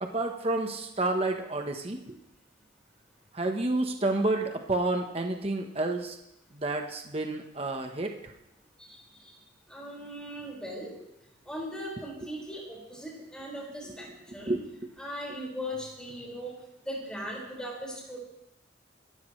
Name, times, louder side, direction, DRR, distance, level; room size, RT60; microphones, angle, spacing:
voice 1, 0.0-2.2 3.3-6.2 6.5-8.2 14.5-14.9, right 2 dB, 30° right, 3 dB, 1.2 m, -30 dB
voice 2, 9.7-10.9 11.5-14.1 14.3-14.6 15.0-16.6 16.8-18.2, equal, 5° left, -3 dB, 5.4 m, -38 dB
26.5 x 14.0 x 3.3 m, 0.83 s
head